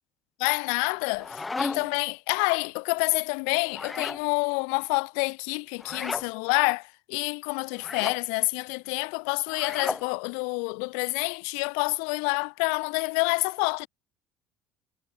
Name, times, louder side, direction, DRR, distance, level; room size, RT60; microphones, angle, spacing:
voice 1, 0.4-13.9, left 40 dB or more, 90° left, 1.0 m, -28 dB
sound 1, 1.0-2.0 3.7-4.3 5.8-6.3 7.8-8.2 9.5-10.1, left 3 dB, 15° left, 4.1 m, -34 dB
cardioid pair, 130°, 0 cm